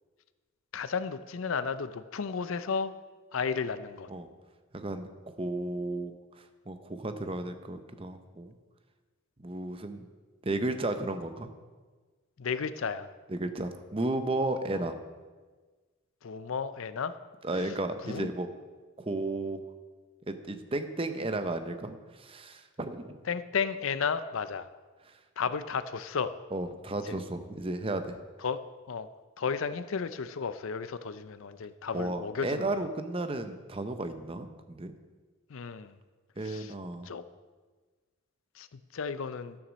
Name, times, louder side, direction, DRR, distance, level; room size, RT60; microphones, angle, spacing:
voice 1, 0.7-2.9 3.3-4.1 12.4-13.1 14.7-14.8 16.2-17.2 18.0-18.3 23.2-24.7 25.4-26.3 27.0-27.2 28.4-29.1 29.4-32.7 35.5-36.0 36.4-36.7 37.0-37.2 38.6-39.6, left 5 dB, 70° left, 13 dB, 0.5 m, -33 dB
voice 2, 4.7-6.1 6.7-8.5 9.4-10.1 10.4-11.5 13.3-14.9 17.4-18.5 19.0-19.6 20.3-23.2 26.5-28.2 31.9-34.9 36.4-37.1, right 2 dB, 25° right, 8 dB, 0.7 m, -33 dB
12.5 x 7.1 x 6.2 m, 1.4 s
head